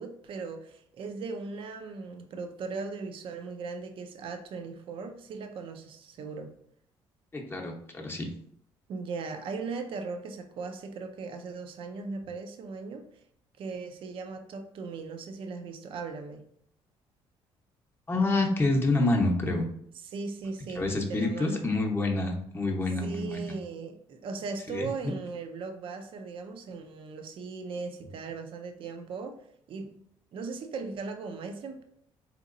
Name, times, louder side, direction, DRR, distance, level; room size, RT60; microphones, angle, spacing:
voice 1, 0.0-6.5 8.9-13.0 13.6-16.4 20.0-21.6 23.0-29.4 29.7-29.9 30.3-31.8, right 4 dB, 60° right, 6 dB, 0.5 m, -38 dB
voice 2, 7.3-8.3 18.1-19.6 20.8-23.5 24.7-24.9, left 2 dB, 20° left, 1 dB, 0.7 m, -27 dB
3.8 x 2.9 x 2.5 m, 0.69 s
cardioid pair, 90°, 10 cm